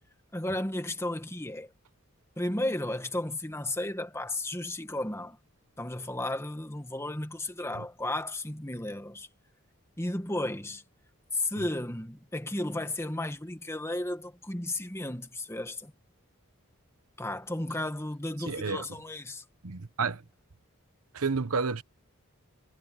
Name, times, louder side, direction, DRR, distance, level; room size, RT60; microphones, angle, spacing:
voice 1, 0.3-1.7 2.4-5.4 5.8-9.3 10.0-10.8 11.3-15.9 17.2-19.4, left 1 dB, 10° left, 1.8 m, -34 dB
voice 2, 18.4-18.9 19.6-20.2 21.1-21.8, right 4 dB, 85° right, 1.1 m, -30 dB
head